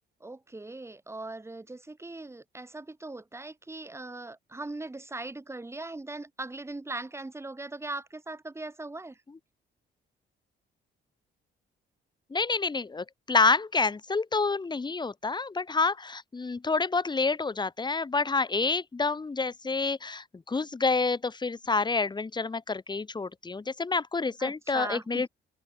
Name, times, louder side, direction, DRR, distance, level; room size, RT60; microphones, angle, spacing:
voice 1, 0.2-9.2 24.4-25.3, right 2 dB, 15° right, 1.6 m, -39 dB
voice 2, 12.3-25.3, left 4 dB, 20° left, 1.2 m, -28 dB
open air
cardioid pair, 90°, 20 cm